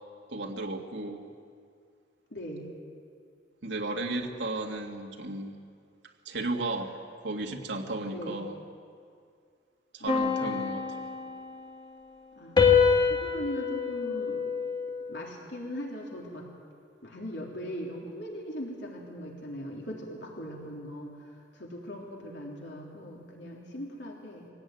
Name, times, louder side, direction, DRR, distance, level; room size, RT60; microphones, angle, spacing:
voice 1, 0.3-1.3 3.6-5.5 6.3-8.6 9.9-11.0, right 2 dB, 75° right, 1 dB, 2.2 m, -34 dB
voice 2, 2.3-2.7 8.1-8.4 10.0-11.1 12.4-14.4 15.1-16.5 17.0-24.5, equal, 70° left, -1 dB, 3.5 m, -40 dB
sound 1, 10.1-11.8 12.6-15.2, left 6 dB, 25° left, 2.3 m, -26 dB
23.5 x 17.0 x 9.4 m, 2.2 s
head